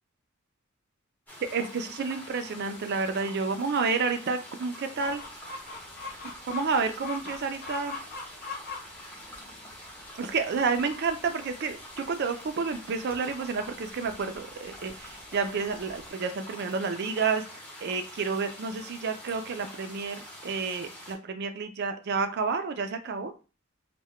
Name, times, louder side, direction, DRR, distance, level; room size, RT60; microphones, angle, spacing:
sound 1, 1.3-21.2, equal, 10° left, 0.7 m, -46 dB
voice 1, 1.5-5.2 6.5-8.0 10.2-17.4 17.8-23.3, right 4 dB, 50° right, 8 dB, 0.4 m, -30 dB
Chicken rooster, 5.0-16.1, left 4 dB, 45° left, 0.5 m, -44 dB
2.2 x 2.1 x 3.5 m, 0.33 s
head